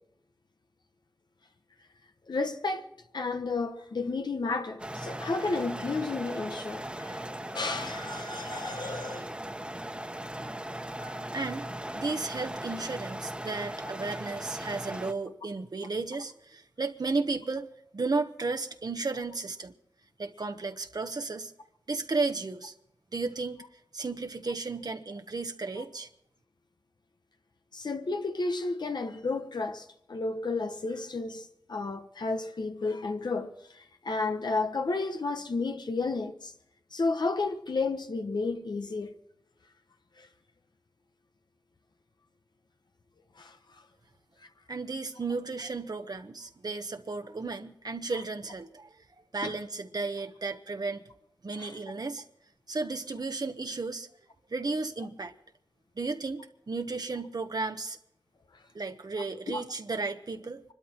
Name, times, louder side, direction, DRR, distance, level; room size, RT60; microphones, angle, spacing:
voice 1, 2.3-9.3 11.0-11.2 25.8-25.9 27.7-36.5 36.9-39.2 40.2-40.3 43.4-43.6 49.4-49.6 51.6-51.8 59.5-59.6, left 3 dB, 85° left, 1.2 m, -32 dB
sound 1, 4.8-15.1, right 1 dB, 15° right, 1.2 m, -38 dB
voice 2, 11.3-11.7 11.9-17.7 17.9-19.7 20.2-21.5 21.9-22.7 23.1-23.6 23.9-26.1 44.7-48.9 49.3-51.0 51.4-52.2 52.7-54.1 54.5-55.3 56.0-58.0 58.7-60.6, right 3 dB, 65° right, 1.1 m, -34 dB
25.0 x 12.5 x 4.5 m
wide cardioid pair, 70°, 7 cm